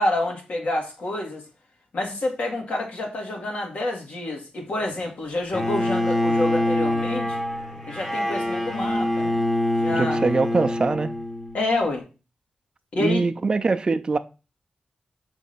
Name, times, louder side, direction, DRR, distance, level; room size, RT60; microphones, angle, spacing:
voice 1, 0.0-1.4 1.9-7.4 7.9-9.4 9.8-10.2 11.5-12.0 12.9-13.3, left 2 dB, 70° left, 1.9 m, -28 dB
Bowed string instrument, 5.5-11.6, left 1 dB, 15° left, 0.9 m, -25 dB
voice 2, 9.9-11.1 13.0-14.2, right 3 dB, 35° right, 0.5 m, -23 dB
6.2 x 3.3 x 5.6 m
wide cardioid pair, 130°, 3 cm